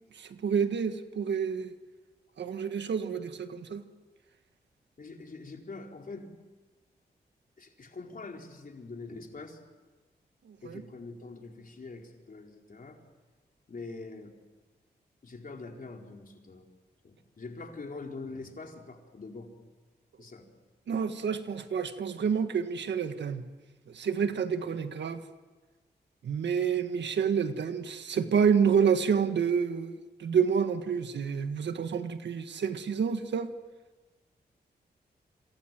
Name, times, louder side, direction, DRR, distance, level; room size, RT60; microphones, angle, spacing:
voice 1, 0.2-1.7 2.4-3.8 10.6-10.8 20.9-23.5 23.9-25.2 26.2-33.5, right 6 dB, 80° right, 8 dB, 1.7 m, -28 dB
voice 2, 5.0-6.3 7.6-9.6 10.6-13.0 13.7-14.3 15.2-16.7 17.0-19.5 20.2-20.5, left 3 dB, 50° left, 2 dB, 4.6 m, -44 dB
27.5 x 26.5 x 7.8 m, 1.3 s
cardioid pair, 60°, 18 cm